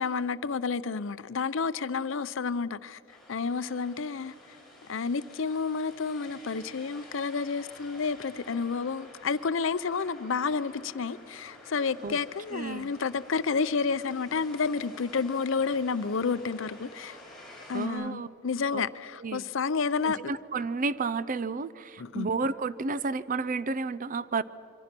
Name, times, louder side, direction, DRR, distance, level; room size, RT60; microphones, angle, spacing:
voice 1, 0.0-3.0 3.3-4.3 4.9-17.2 17.7-20.2 22.0-22.3, left 5 dB, 65° left, 0.6 m, -30 dB
sound 1, 3.1-17.9, left 1 dB, ahead, 5.5 m, -51 dB
voice 2, 12.5-12.9 17.7-18.3 18.7-18.9 19.2-19.4 20.0-24.4, right 4 dB, 40° right, 0.5 m, -31 dB
26.0 x 24.0 x 6.1 m
head